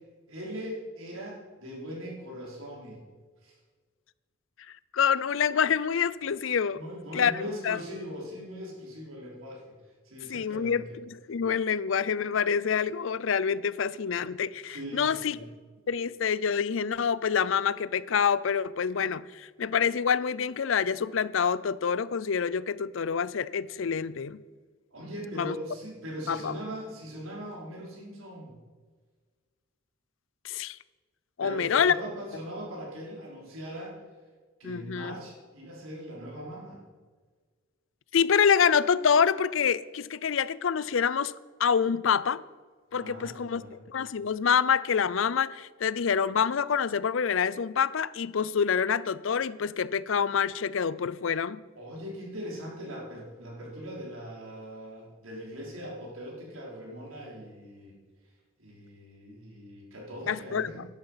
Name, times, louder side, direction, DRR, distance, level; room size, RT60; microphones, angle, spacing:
voice 1, 0.3-3.0 3.4-3.5 6.7-9.7 10.0-10.9 14.6-15.4 24.9-28.6 31.4-34.0 34.6-36.8 42.9-43.8 51.7-58.0 58.6-60.8, equal, 85° right, 4.9 m, -40 dB
voice 2, 4.9-6.8 7.1-7.3 7.6-7.8 10.3-15.4 15.9-24.4 25.3-25.5 26.3-26.5 30.4-30.8 31.4-31.9 34.6-35.1 38.1-41.3 41.6-42.4 42.9-43.6 43.9-51.6 60.3-60.9, left 7 dB, 65° left, 0.5 m, -26 dB
13.0 x 11.0 x 5.7 m
head